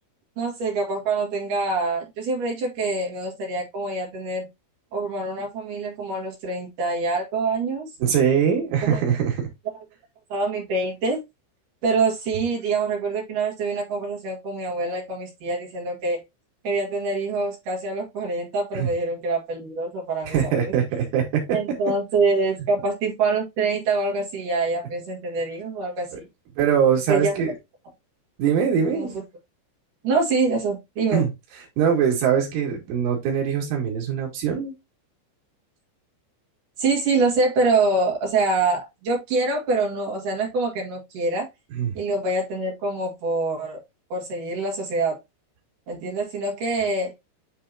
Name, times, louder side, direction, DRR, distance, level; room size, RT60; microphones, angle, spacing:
voice 1, 0.4-4.5 4.9-7.9 8.8-9.0 10.3-11.2 11.8-16.2 16.6-20.3 21.5-26.3 27.1-27.3 28.9-29.1 30.0-31.2 36.8-41.5 41.9-43.8 44.1-45.2 45.9-47.1, right 3 dB, 50° right, 3.3 m, -25 dB
voice 2, 8.0-9.5 18.7-18.9 20.2-21.6 26.1-26.2 26.6-27.5 28.4-29.2 31.1-31.3 31.8-34.7 41.7-42.0, right 8 dB, 85° right, 4.7 m, -22 dB
10.5 x 3.6 x 2.9 m
omnidirectional pair, 5.4 m